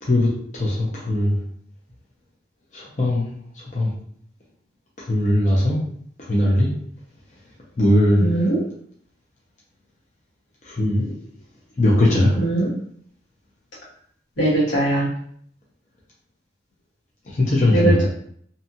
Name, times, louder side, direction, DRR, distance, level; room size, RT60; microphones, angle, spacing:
voice 1, 0.0-1.4 2.7-3.3 3.5-3.9 5.0-5.8 6.2-6.7 7.8-8.4 10.6-11.1 11.8-12.4 17.3-18.0, left 1 dB, 40° left, -5 dB, 0.6 m, -19 dB
voice 2, 8.2-8.6 12.4-12.7 14.4-15.1 17.7-18.0, right 2 dB, 90° left, -7 dB, 1.4 m, -20 dB
2.7 x 2.3 x 2.7 m, 0.64 s
head